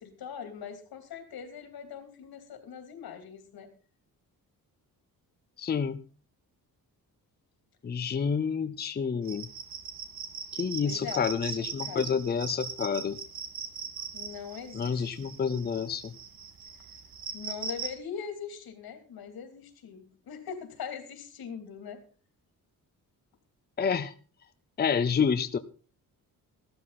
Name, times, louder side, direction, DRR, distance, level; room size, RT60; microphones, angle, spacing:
voice 1, 0.0-3.7 10.8-11.5 11.8-12.2 14.1-15.3 17.3-22.0, left 7 dB, 90° left, 7 dB, 3.0 m, -41 dB
voice 2, 5.6-6.0 7.8-9.5 10.5-13.2 14.7-16.1 23.8-24.1 24.8-25.6, left 6 dB, 30° left, 10 dB, 0.7 m, -29 dB
sound 1, 9.2-17.9, right 6 dB, 70° right, 2.2 m, -40 dB
15.0 x 12.0 x 4.1 m, 0.37 s
wide cardioid pair, 145°, 36 cm